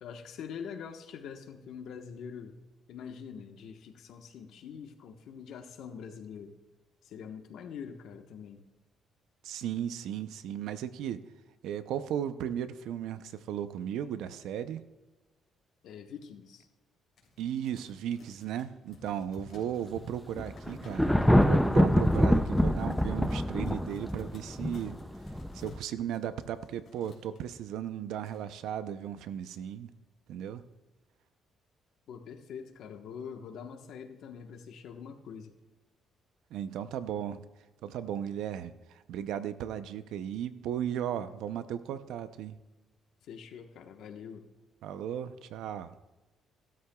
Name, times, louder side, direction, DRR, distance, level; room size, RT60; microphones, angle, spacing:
voice 1, 0.0-2.6 2.9-6.6 7.0-8.6 15.8-16.7 32.1-35.5 43.2-44.5, left 7 dB, 70° left, 5 dB, 1.2 m, -44 dB
voice 2, 9.4-11.2 11.6-14.8 17.4-24.9 25.5-29.9 30.3-30.6 36.5-37.4 37.8-38.7 39.1-42.6 44.8-45.9, right 10 dB, 80° right, 12 dB, 0.6 m, -36 dB
sound 1, 17.2-27.4 27.9-28.0 28.2-28.8 29.3-29.6, left 3 dB, 50° left, 3.3 m, -53 dB
Thunder, 20.4-25.8, equal, ahead, 0.4 m, -25 dB
16.0 x 12.5 x 2.3 m, 1.1 s
cardioid pair, 145°, 0 cm